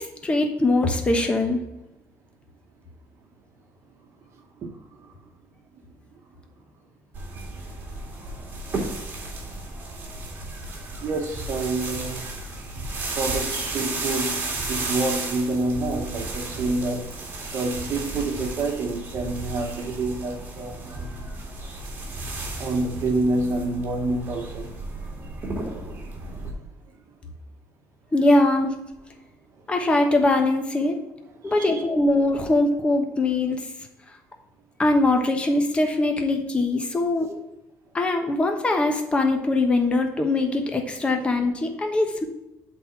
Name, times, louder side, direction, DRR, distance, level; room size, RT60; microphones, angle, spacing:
voice 1, 0.0-1.6 28.1-28.8 29.7-31.0 31.4-33.6 34.8-37.4 37.9-42.3, left 2 dB, 20° left, 1.0 m, -22 dB
voice 2, 4.6-5.2 11.0-12.3 13.1-21.2 22.6-25.1 25.8-26.5 31.4-31.8, right 2 dB, 50° right, 1.2 m, -28 dB
sound 1, 7.1-26.5, right 2 dB, 30° right, 2.2 m, -33 dB
7.8 x 4.2 x 5.9 m
cardioid pair, 145°, 6 cm